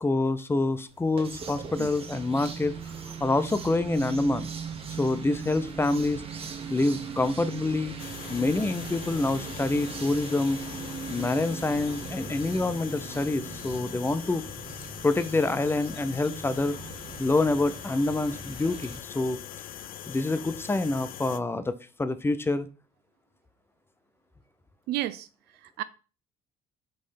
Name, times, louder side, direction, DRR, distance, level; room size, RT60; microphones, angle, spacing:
voice 1, 0.0-2.7 3.2-4.5 5.0-6.2 6.7-8.0 8.3-10.6 11.1-14.5 15.0-16.8 17.2-19.4 20.1-21.7 22.0-22.7, left 2 dB, 15° left, 0.6 m, -26 dB
sound 1, 0.9-19.0, right 5 dB, 35° right, 1.2 m, -39 dB
sound 2, 8.0-21.4, left 11 dB, 55° left, 0.5 m, -42 dB
voice 2, 24.9-25.8, right 15 dB, 75° right, 0.4 m, -33 dB
5.3 x 3.2 x 5.6 m
cardioid pair, 110°, 17 cm